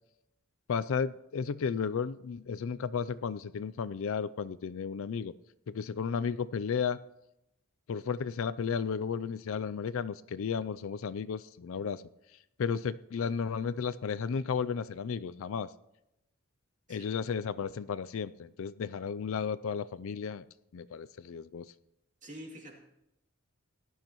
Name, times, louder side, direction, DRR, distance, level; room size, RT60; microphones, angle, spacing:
voice 1, 0.7-5.3 5.7-7.0 7.9-12.0 12.6-15.7 16.9-20.4 20.7-21.7, left 6 dB, 65° left, 15 dB, 0.4 m, -33 dB
voice 2, 22.2-22.8, equal, 35° right, 0 dB, 2.5 m, -46 dB
18.5 x 12.0 x 3.0 m, 0.86 s
head